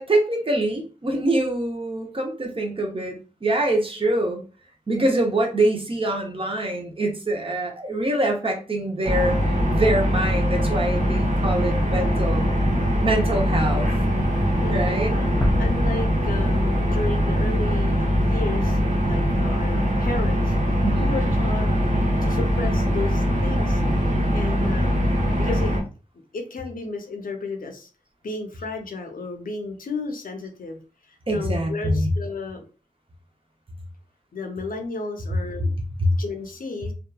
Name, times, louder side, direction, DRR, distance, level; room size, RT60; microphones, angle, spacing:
voice 1, 0.0-4.4 4.9-9.4 9.7-12.5 13.0-13.9 14.7-15.1 20.8-21.1 31.3-32.1 36.0-36.1, right 1 dB, 40° right, 2 dB, 0.7 m, -24 dB
sound 1, 9.0-25.8, equal, 60° right, 0.9 m, -22 dB
sound 2, 15.4-18.3, equal, 10° left, 0.5 m, -29 dB
voice 2, 15.6-21.7 22.2-25.1 25.4-25.8 26.3-27.9 28.2-30.8 31.1-32.7 34.3-35.7 36.2-36.9, left 3 dB, 80° left, 4 dB, 0.5 m, -33 dB
2.8 x 2.3 x 2.2 m, 0.35 s
wide cardioid pair, 65°, 14 cm